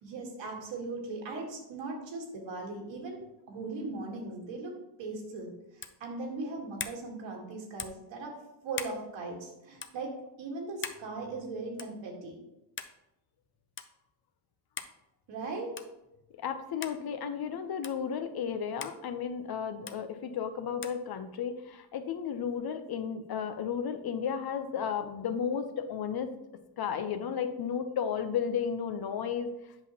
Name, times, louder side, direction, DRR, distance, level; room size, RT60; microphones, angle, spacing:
voice 1, 0.0-8.3 8.6-12.4 15.3-15.7, right 3 dB, 85° right, 0 dB, 1.7 m, -39 dB
sound 1, 5.8-6.0 6.8-7.0 7.8-8.0 8.7-9.0 9.8-9.9 10.8-11.0 11.8-12.0 12.8-13.0 13.8-13.9 14.8-15.0 15.7-16.0 16.8-17.0 17.8-18.0 18.8-19.0 19.9-20.0 20.8-21.0, left 6 dB, 30° left, 0.5 m, -40 dB
voice 2, 16.4-26.3 26.8-29.5, left 7 dB, 55° left, 8 dB, 0.8 m, -33 dB
8.0 x 5.6 x 2.9 m, 0.92 s
cardioid pair, 85°, 44 cm